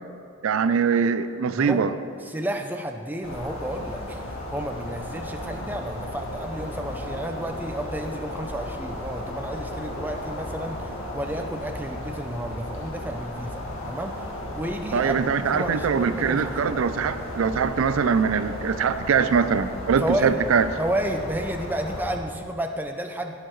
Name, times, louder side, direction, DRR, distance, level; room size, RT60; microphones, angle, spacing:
voice 1, 0.4-1.9 14.9-20.7, right 6 dB, 75° right, 12 dB, 0.4 m, -22 dB
voice 2, 1.6-1.9 2.3-4.2 4.5-13.6 13.9-14.3 14.5-16.5 20.0-20.4 20.8-23.4, right 1 dB, 10° right, 4 dB, 0.4 m, -31 dB
sound 1, 3.2-22.2, left 1 dB, 75° left, 1.7 m, -35 dB
18.5 x 6.6 x 3.1 m, 2.5 s
head